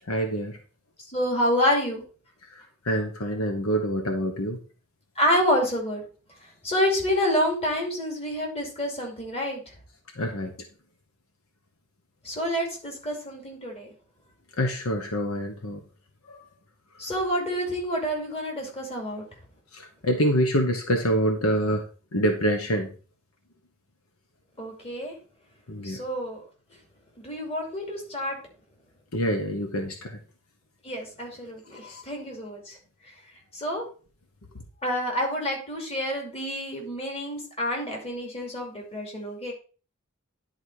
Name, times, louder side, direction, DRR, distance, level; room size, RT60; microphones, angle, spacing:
voice 1, 0.1-0.6 2.9-4.6 10.2-10.5 14.6-15.8 16.3-16.4 19.7-21.8 22.1-22.9 25.7-26.0 29.1-30.2 31.8-32.0, equal, 75° left, 5 dB, 1.2 m, -26 dB
voice 2, 1.1-2.0 5.2-6.0 6.6-9.7 12.2-13.9 17.0-19.2 24.6-25.1 25.8-26.4 26.7-26.8 27.2-28.4 30.8-32.8 33.0-33.1 33.5-33.9 34.8-39.5, equal, 30° left, 0 dB, 2.6 m, -28 dB
10.5 x 4.2 x 4.7 m, 0.37 s
head